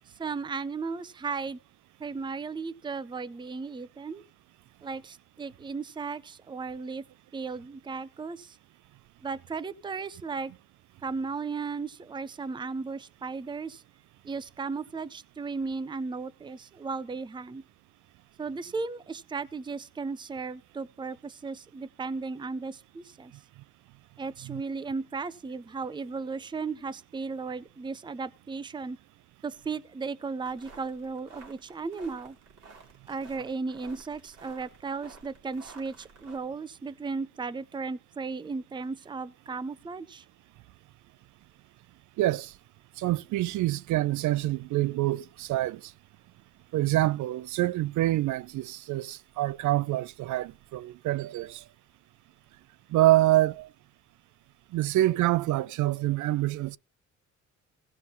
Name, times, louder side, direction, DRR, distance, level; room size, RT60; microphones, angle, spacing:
voice 1, 0.2-1.6 2.0-4.2 4.8-7.1 7.3-8.6 9.2-10.5 11.0-13.8 14.2-17.6 18.4-23.3 24.2-29.0 29.4-32.4 33.1-40.2, right 4 dB, 15° right, 0.6 m, -35 dB
sound 1, 30.4-36.4, right 4 dB, 55° right, 3.9 m, -52 dB
voice 2, 42.2-42.5 43.0-45.9 46.7-51.6 52.9-53.7 54.7-56.8, right 16 dB, 75° right, 0.5 m, -26 dB
15.5 x 5.9 x 5.5 m
cardioid pair, 90°, 30 cm